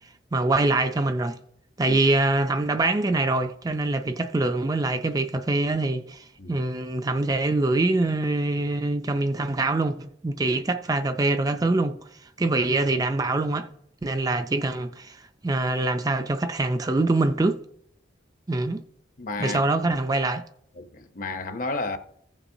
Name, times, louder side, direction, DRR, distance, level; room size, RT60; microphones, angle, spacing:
voice 1, 0.3-1.4 1.8-12.0 12.4-13.7 14.0-15.2 15.4-17.6 18.5-18.8 19.4-20.4, right 2 dB, 20° right, 0.4 m, -24 dB
voice 2, 19.2-19.6 20.8-22.0, left 3 dB, 45° left, 0.7 m, -32 dB
15.5 x 7.0 x 2.7 m
head